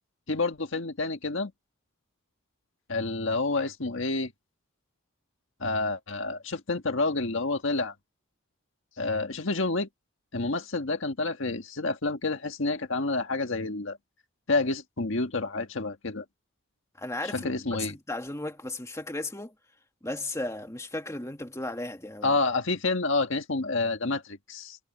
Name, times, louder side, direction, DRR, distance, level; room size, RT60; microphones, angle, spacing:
voice 1, 0.3-1.5 2.9-4.3 5.6-7.9 9.0-9.9 10.3-14.0 14.5-16.3 17.3-18.0 22.2-24.8, left 3 dB, 60° left, 1.7 m, -29 dB
voice 2, 17.0-17.5 17.8-19.5 20.0-22.4, left 2 dB, 15° left, 2.2 m, -35 dB
head